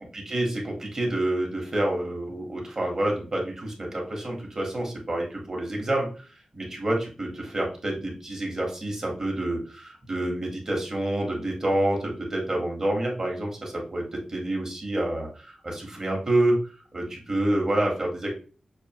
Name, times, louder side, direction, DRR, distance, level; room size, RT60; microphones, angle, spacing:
voice 1, 0.3-6.1 6.5-16.6 16.9-18.4, right 1 dB, 30° right, 0 dB, 1.3 m, -28 dB
6.1 x 2.6 x 2.9 m, 0.37 s
wide cardioid pair, 170°, 2 cm